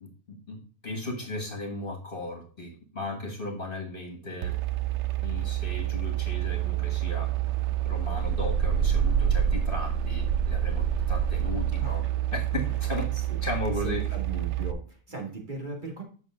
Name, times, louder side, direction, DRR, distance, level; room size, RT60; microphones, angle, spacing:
voice 1, 0.0-0.6 0.8-4.5 5.2-7.3 7.8-12.0 12.3-13.1 13.4-14.0, left 2 dB, 40° left, 4 dB, 1.7 m, -36 dB
sound 1, 4.4-14.7, right 10 dB, 60° right, 0.8 m, -27 dB
voice 2, 13.8-16.0, right 3 dB, 35° right, 0 dB, 2.3 m, -38 dB
7.7 x 6.2 x 3.7 m, 0.39 s
omnidirectional pair, 1.5 m